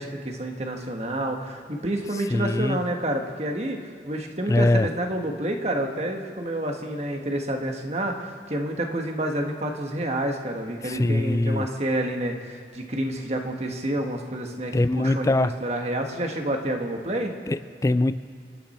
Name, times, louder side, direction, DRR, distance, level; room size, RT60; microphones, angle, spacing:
voice 1, 0.0-17.3, right 1 dB, 35° right, 3 dB, 1.5 m, -29 dB
voice 2, 2.3-2.8 4.5-4.9 10.8-11.7 14.7-15.6 17.5-18.2, left 2 dB, 20° left, 13 dB, 0.3 m, -22 dB
28.0 x 9.6 x 4.4 m, 2.3 s
head